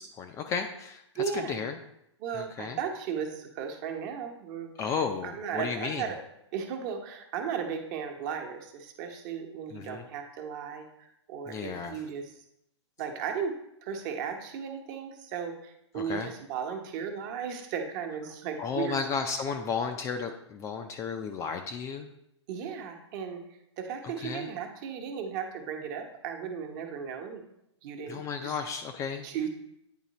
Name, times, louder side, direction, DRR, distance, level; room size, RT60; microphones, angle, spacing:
voice 1, 0.2-1.8 2.3-2.8 4.8-6.0 9.7-10.0 11.5-12.0 16.0-16.3 18.6-22.1 24.0-24.5 28.1-29.2, left 6 dB, 20° left, 6 dB, 0.4 m, -33 dB
voice 2, 1.1-1.6 2.2-4.9 5.2-6.2 6.5-12.3 13.0-13.5 13.8-19.0 22.5-23.4 23.8-27.4 27.8-28.6 29.2-29.5, right 7 dB, 40° right, 4 dB, 1.1 m, -35 dB
9.0 x 3.7 x 4.1 m, 0.79 s
hypercardioid pair, 130°, 15 cm